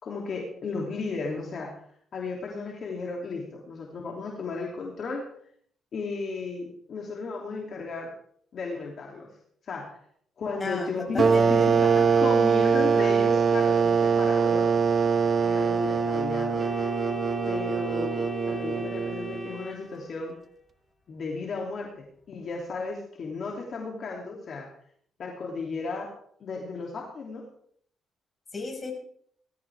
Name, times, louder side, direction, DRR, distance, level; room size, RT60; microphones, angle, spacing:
voice 1, 0.0-1.7 2.1-5.2 5.9-8.1 8.5-9.3 9.6-10.0 10.4-11.9 12.2-14.7 15.4-16.6 17.5-20.3 21.1-24.7 25.2-26.1 26.4-27.5, left 4 dB, 55° left, -1 dB, 2.8 m, -34 dB
voice 2, 10.6-11.7 28.5-28.9, left 3 dB, 30° left, 2 dB, 5.5 m, -35 dB
sound 1, 11.2-19.6, right 5 dB, 45° right, 1.0 m, -23 dB
Organ, 16.6-20.5, left 1 dB, 10° left, 3.2 m, -40 dB
19.5 x 13.5 x 3.5 m, 0.64 s
cardioid pair, 90°, 0 cm